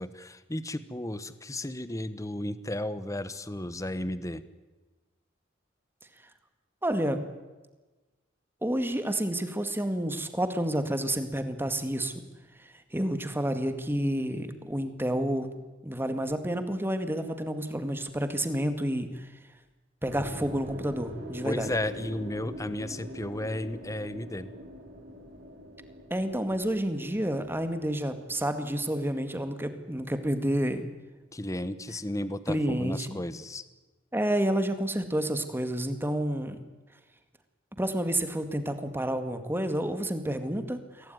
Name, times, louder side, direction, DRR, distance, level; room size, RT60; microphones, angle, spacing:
voice 1, 0.0-4.4 21.4-24.5 31.3-33.6, left 1 dB, 15° left, 14 dB, 1.1 m, -34 dB
voice 2, 6.8-7.2 8.6-12.1 12.9-15.5 15.8-19.3 20.0-21.7 26.1-30.9 32.5-33.2 34.1-36.6 37.8-41.1, right 1 dB, 10° right, 8 dB, 2.0 m, -29 dB
sound 1, 20.0-30.2, equal, 70° right, 8.0 m, -44 dB
23.5 x 17.0 x 9.4 m, 1.2 s
head